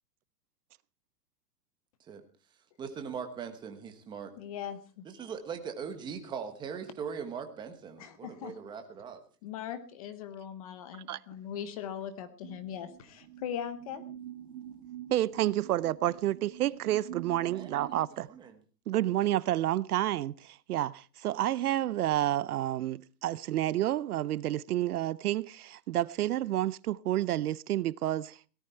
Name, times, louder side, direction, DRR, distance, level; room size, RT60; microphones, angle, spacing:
voice 1, 2.8-4.3 5.1-9.2 17.5-18.6, right 6 dB, 10° right, 1.1 m, -40 dB
voice 2, 4.4-5.0 8.0-8.6 9.4-14.0, left 9 dB, 20° left, 0.8 m, -40 dB
sound 1, 12.4-18.0, right 11 dB, 35° right, 1.1 m, -47 dB
voice 3, 15.1-18.3 18.9-28.4, right 13 dB, 65° right, 0.6 m, -30 dB
18.0 x 13.0 x 4.4 m
supercardioid pair, 175°, 49 cm